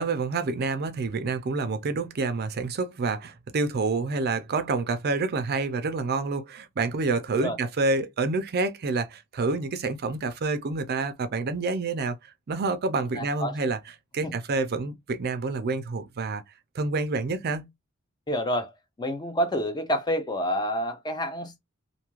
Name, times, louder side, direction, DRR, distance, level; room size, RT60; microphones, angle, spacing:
voice 1, 0.0-13.8 14.1-16.4 16.7-17.7, right 3 dB, 45° right, 0.4 m, -28 dB
voice 2, 13.2-13.7 14.2-14.3 18.3-21.6, equal, 20° left, 0.5 m, -29 dB
2.6 x 2.4 x 3.0 m
head